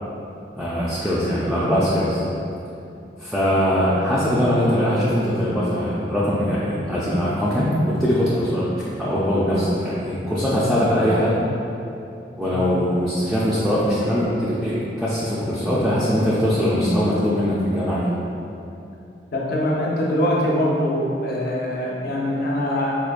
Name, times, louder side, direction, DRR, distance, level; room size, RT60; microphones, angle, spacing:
voice 1, 0.6-2.2 3.2-8.7 9.0-11.4 12.4-18.1, equal, ahead, -10 dB, 0.3 m, -21 dB
voice 2, 12.4-12.8 19.3-23.0, left 1 dB, 60° left, -4 dB, 0.6 m, -23 dB
4.3 x 2.3 x 2.4 m, 2.7 s
head